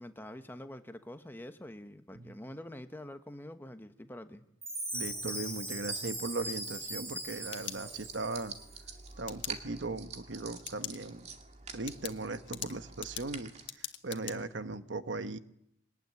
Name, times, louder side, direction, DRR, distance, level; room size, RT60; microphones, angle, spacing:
voice 1, 0.0-4.4, left 1 dB, 10° left, 8 dB, 1.3 m, -46 dB
Chime, 4.6-8.6, right 1 dB, 15° right, 3.6 m, -39 dB
voice 2, 4.9-8.5 9.2-11.3 11.7-15.4, right 3 dB, 70° right, 11 dB, 1.1 m, -38 dB
sound 1, 5.0-13.7, right 5 dB, 35° right, 2.3 m, -49 dB
sound 2, 7.2-8.3 9.3-9.5 10.6-11.0 11.4-11.5 11.9-14.4, left 12 dB, 70° left, 1.5 m, -42 dB
23.0 x 19.0 x 9.6 m, 0.77 s
head